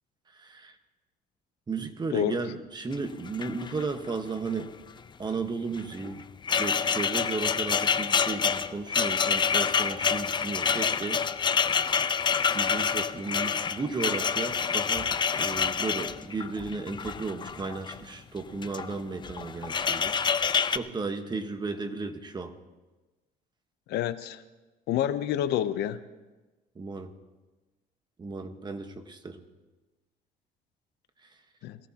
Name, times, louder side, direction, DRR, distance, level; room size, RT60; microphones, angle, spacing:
voice 1, 0.3-0.7 1.7-4.7 5.2-6.2 6.6-11.2 12.5-15.1 15.4-20.2 20.7-22.5 26.7-27.1 28.2-29.4, right 4 dB, 25° right, 7 dB, 1.3 m, -34 dB
sound 1, 2.9-3.0 3.3-4.1 4.4-4.6 5.7-18.0 18.5-19.0 19.2-20.8, left 6 dB, 25° left, 0.5 m, -27 dB
voice 2, 23.9-24.4 24.9-26.0 31.6-31.8, left 11 dB, 80° left, 13 dB, 0.8 m, -28 dB
23.0 x 16.5 x 2.9 m, 1.2 s
cardioid pair, 110°, 17 cm